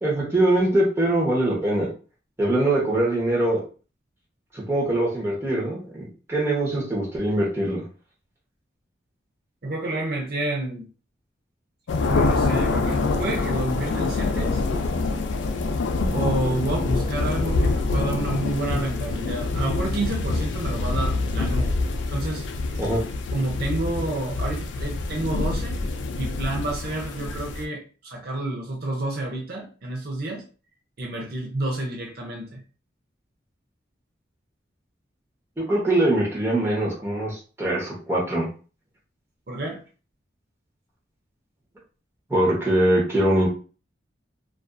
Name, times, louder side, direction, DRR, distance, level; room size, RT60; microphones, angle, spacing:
voice 1, 0.0-1.9 2.4-3.6 4.5-7.8 22.8-23.0 35.7-38.5 42.3-43.5, right 1 dB, 15° right, -5 dB, 0.8 m, -22 dB
voice 2, 9.6-10.9 12.0-14.6 16.1-21.7 22.1-22.4 23.3-25.8 26.2-30.4 31.0-32.6 39.5-39.8, right 2 dB, 55° right, -1 dB, 0.5 m, -29 dB
sound 1, 11.9-27.6, left 3 dB, 70° left, 0.3 m, -25 dB
2.5 x 2.3 x 2.3 m, 0.36 s
head